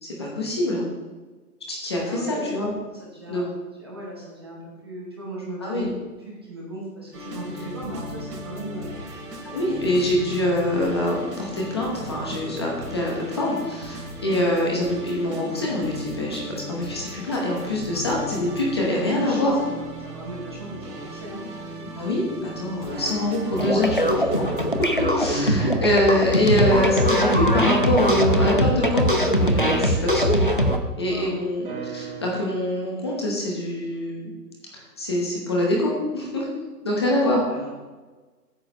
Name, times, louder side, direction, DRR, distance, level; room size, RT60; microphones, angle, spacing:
voice 1, 0.0-0.8 1.7-2.7 3.3-3.4 5.6-5.9 9.4-16.4 16.7-19.6 22.0-30.3 31.0-34.3 34.7-36.5 36.8-37.4, left 1 dB, 15° left, -2 dB, 0.9 m, -24 dB
voice 2, 2.0-2.5 2.9-5.9 6.3-8.9 18.9-21.4 31.0-31.4 37.1-37.7, right 1 dB, 15° right, -4 dB, 0.8 m, -37 dB
sound 1, 7.1-25.1, equal, 70° right, 3.4 m, -37 dB
sound 2, 21.3-22.5 22.9-31.0 31.5-32.4, right 2 dB, 35° right, 1.9 m, -40 dB
sound 3, 23.5-30.8, equal, 35° left, 0.4 m, -21 dB
8.7 x 4.8 x 6.9 m, 1.3 s
hypercardioid pair, 170°, 48 cm